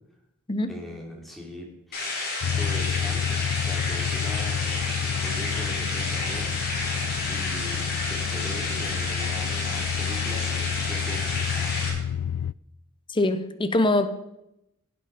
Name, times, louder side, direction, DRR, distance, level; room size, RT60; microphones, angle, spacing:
voice 1, 0.7-2.2 2.5-11.8, left 1 dB, ahead, -1 dB, 3.1 m, -41 dB
sound 1, 1.9-11.9, left 2 dB, 45° left, 5.4 m, -30 dB
sound 2, 2.4-12.5, left 8 dB, 80° left, 0.3 m, -29 dB
voice 2, 13.1-14.1, left 2 dB, 25° left, 9 dB, 0.8 m, -23 dB
17.0 x 8.4 x 5.0 m, 0.84 s
head